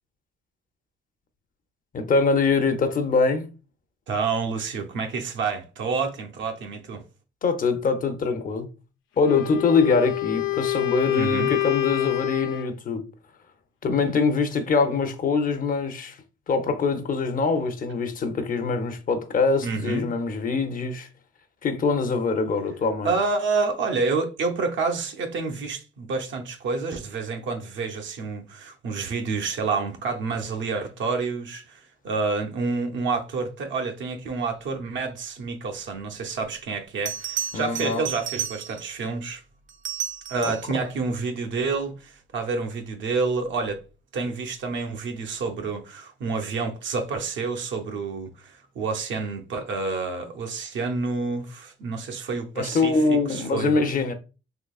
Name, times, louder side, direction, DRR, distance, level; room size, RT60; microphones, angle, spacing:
voice 1, 1.9-3.5 7.4-8.7 9.2-13.0 13.8-16.2 16.5-21.1 21.6-23.1 37.5-38.0 40.4-40.5 52.6-54.1, left 4 dB, 45° left, 0.6 m, -23 dB
voice 2, 4.1-7.0 11.2-11.5 19.6-20.1 23.0-39.4 40.3-43.8 44.1-53.8, right 4 dB, 70° right, 0.7 m, -28 dB
Wind instrument woodwind instrument, 9.2-12.7, left 16 dB, 90° left, 0.6 m, -26 dB
Bell, 36.4-36.5 37.1-39.0 39.7-40.8 43.4-43.7, right 9 dB, 40° right, 0.4 m, -32 dB
3.7 x 2.9 x 2.3 m
cardioid pair, 90°, 20 cm